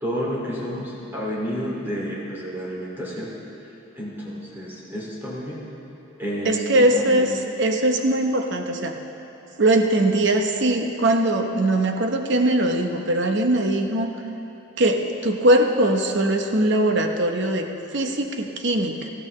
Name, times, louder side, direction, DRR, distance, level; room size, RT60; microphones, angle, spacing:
voice 1, 0.0-3.3 4.0-5.6 6.2-7.4, equal, 10° right, -5 dB, 2.4 m, -30 dB
voice 2, 6.4-8.9 9.6-14.1 14.8-19.1, right 1 dB, 55° right, 4 dB, 0.9 m, -21 dB
19.0 x 14.5 x 3.2 m, 3.0 s
head